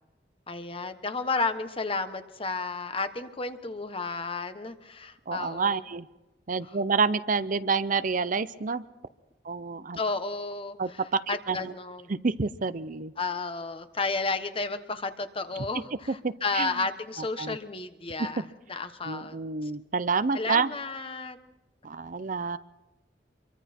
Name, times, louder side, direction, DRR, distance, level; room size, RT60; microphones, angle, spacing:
voice 1, 0.5-5.8 10.0-10.8 11.3-12.1 13.2-18.4 18.7-19.7 20.3-21.4, left 3 dB, 30° left, 9 dB, 1.2 m, -32 dB
voice 2, 5.3-6.1 6.5-8.8 9.5-10.0 10.8-11.7 12.1-13.1 15.6-15.7 16.2-16.9 17.4-17.6 18.2-18.4 19.0-20.7 21.8-22.6, right 4 dB, 50° right, 14 dB, 0.6 m, -28 dB
25.5 x 23.0 x 4.4 m, 1.0 s
head